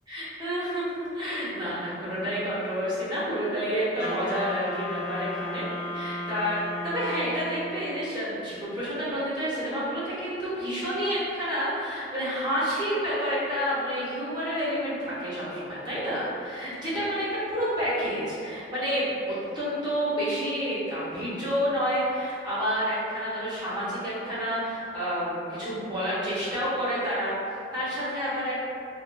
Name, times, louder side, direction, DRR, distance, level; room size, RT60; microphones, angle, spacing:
voice 1, 0.1-5.7 5.9-28.6, equal, 25° right, -11 dB, 1.1 m, -29 dB
Wind instrument woodwind instrument, 4.0-7.8, left 1 dB, 65° left, 0.7 m, -35 dB
3.6 x 2.6 x 2.3 m, 2.5 s
head